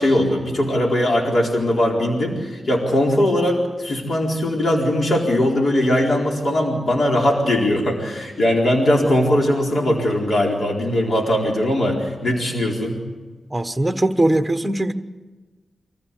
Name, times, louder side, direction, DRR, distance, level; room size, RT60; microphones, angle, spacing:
voice 1, 0.0-13.0, left 1 dB, 55° left, 0 dB, 4.3 m, -20 dB
voice 2, 13.5-14.9, right 1 dB, 10° right, 9 dB, 1.2 m, -20 dB
24.0 x 15.0 x 8.4 m, 1.3 s
cardioid pair, 75°, 0 cm